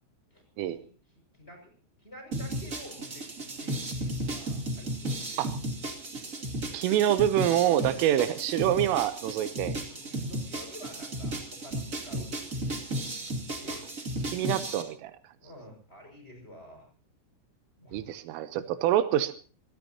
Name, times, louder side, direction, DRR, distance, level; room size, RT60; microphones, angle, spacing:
voice 1, 0.3-0.9 1.3-1.7 2.0-5.4 7.6-8.2 8.5-8.8 9.9-12.8 13.6-13.9 14.2-14.5 15.4-16.9 17.8-18.0 18.6-18.8, left 1 dB, 10° left, 3 dB, 6.0 m, -49 dB
sound 1, 2.3-14.8, right 1 dB, 30° right, 1.6 m, -34 dB
voice 2, 6.7-9.8 14.3-15.1 17.9-19.3, right 12 dB, 80° right, 12 dB, 3.5 m, -26 dB
26.5 x 18.5 x 2.9 m, 0.39 s
omnidirectional pair, 5.8 m